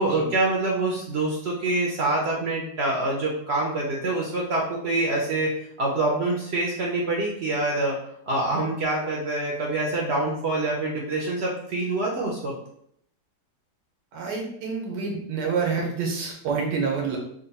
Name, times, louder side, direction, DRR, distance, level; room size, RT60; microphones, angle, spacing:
voice 1, 0.0-5.5 5.8-8.0 8.3-12.5, right 2 dB, 65° right, -2 dB, 0.6 m, -25 dB
voice 2, 14.1-17.2, right 5 dB, 90° right, 0 dB, 1.5 m, -27 dB
3.9 x 2.2 x 4.0 m, 0.70 s
omnidirectional pair, 1.8 m